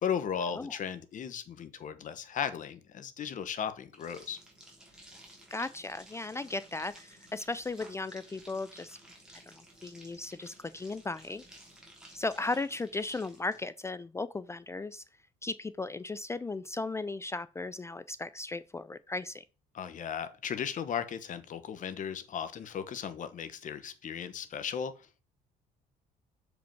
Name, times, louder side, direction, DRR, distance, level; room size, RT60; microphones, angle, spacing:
voice 1, 0.0-4.4 19.7-24.9, left 8 dB, 50° left, 1.0 m, -36 dB
sound 1, 3.9-13.6, right 1 dB, 5° right, 3.0 m, -55 dB
voice 2, 5.5-9.0 9.4-11.4 12.1-15.0 15.4-19.4, left 3 dB, 15° left, 0.3 m, -36 dB
6.8 x 5.1 x 4.5 m
cardioid pair, 110°, 17 cm